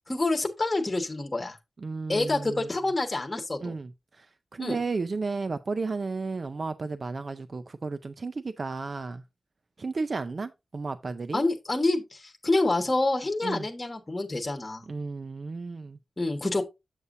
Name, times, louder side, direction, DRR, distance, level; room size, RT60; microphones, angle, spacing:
voice 1, 0.1-1.6 2.1-3.7 4.6-4.8 11.3-14.9 16.2-16.6, left 2 dB, 20° left, 1.3 m, -27 dB
voice 2, 1.8-2.7 3.6-9.2 9.8-11.4 13.4-13.7 14.9-16.0, right 4 dB, 45° right, 0.5 m, -33 dB
8.2 x 7.0 x 2.7 m
wide cardioid pair, 150°, 0 cm